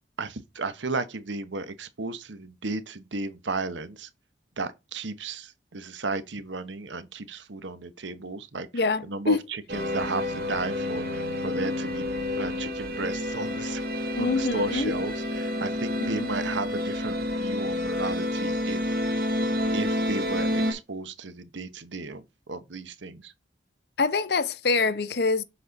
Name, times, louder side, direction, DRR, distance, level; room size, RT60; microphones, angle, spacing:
voice 1, 0.2-4.1 4.6-12.1 12.4-13.8 14.2-19.0 19.7-23.3, right 3 dB, 90° right, 1.0 m, -34 dB
voice 2, 8.7-9.4 14.2-14.9 16.1-16.3 24.0-25.4, left 3 dB, 60° left, 0.7 m, -25 dB
sound 1, 9.7-20.7, left 1 dB, 55° right, 1.5 m, -29 dB
7.3 x 4.3 x 3.9 m
head